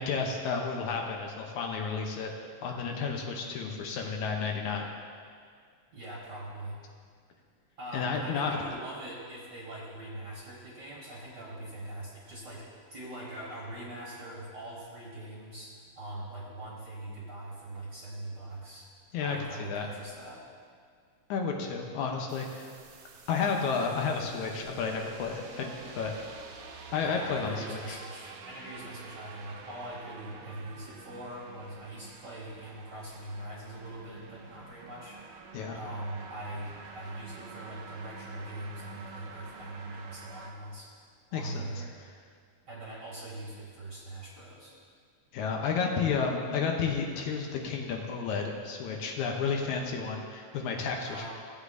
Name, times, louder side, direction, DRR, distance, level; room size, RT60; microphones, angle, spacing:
voice 1, 0.0-2.3 2.6-4.9 7.9-8.6 19.1-19.9 21.3-22.7 23.3-26.1 26.9-28.0 35.5-35.8 41.3-41.7 45.3-51.3, left 5 dB, 75° left, 1 dB, 2.2 m, -31 dB
voice 2, 5.9-6.8 7.8-18.9 19.2-20.4 27.0-40.9 41.3-41.9 42.7-44.7 51.0-51.3, right 1 dB, 45° right, -5 dB, 1.6 m, -42 dB
sound 1, 22.3-40.5, right 5 dB, 70° right, 1.7 m, -48 dB
16.5 x 8.2 x 2.6 m, 2.1 s
omnidirectional pair, 3.5 m